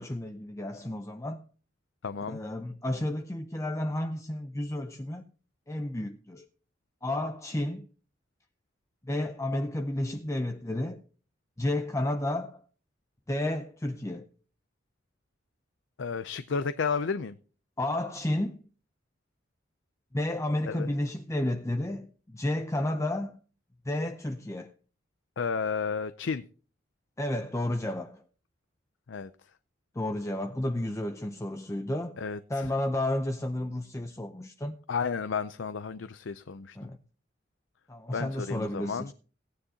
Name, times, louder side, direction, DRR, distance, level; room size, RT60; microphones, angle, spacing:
voice 1, 0.0-1.4 2.3-5.3 5.7-6.5 7.0-7.9 9.0-11.0 11.6-12.6 13.3-14.3 17.8-18.6 20.1-23.4 23.9-24.7 27.2-28.2 30.0-32.2 32.5-34.7 36.8-37.0 37.9-39.1, left 1 dB, 15° left, 0.6 m, -31 dB
voice 2, 2.0-2.4 16.0-17.3 20.7-20.9 25.4-26.4 29.1-29.3 32.2-32.7 34.9-36.9 38.1-39.1, left 5 dB, 90° left, 0.5 m, -32 dB
17.0 x 9.8 x 2.8 m
head